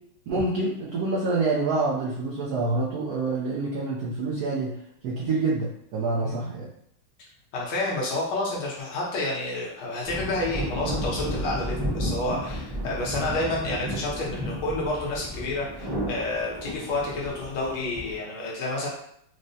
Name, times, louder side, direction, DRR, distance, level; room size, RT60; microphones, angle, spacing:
voice 1, 0.3-4.8 5.0-6.7, right 3 dB, 80° right, -5 dB, 0.8 m, -27 dB
voice 2, 7.5-18.9, left 2 dB, 75° left, -4 dB, 1.7 m, -29 dB
sound 1, 10.0-18.2, equal, 30° right, 0.8 m, -32 dB
4.6 x 2.1 x 2.6 m, 0.72 s
omnidirectional pair, 2.3 m